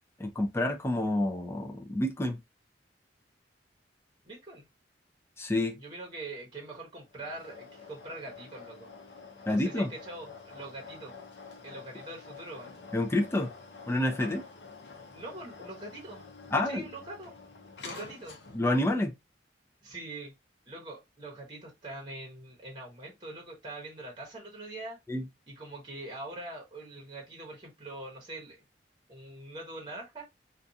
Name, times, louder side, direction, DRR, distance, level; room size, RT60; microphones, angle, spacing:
voice 1, 0.2-2.4 5.4-5.8 9.5-9.9 12.9-13.5 13.9-14.4 16.5-16.9 18.5-19.1 25.1-25.2, left 1 dB, 15° left, 0.5 m, -28 dB
voice 2, 4.2-4.6 5.8-8.9 9.5-11.1 11.6-12.7 15.1-16.3 16.6-17.3 17.8-18.4 19.8-20.3 20.7-25.0 25.5-28.6 29.1-30.3, right 2 dB, 25° right, 0.9 m, -43 dB
sound 1, 7.1-18.8, left 4 dB, 75° left, 0.7 m, -48 dB
2.5 x 2.3 x 2.6 m
head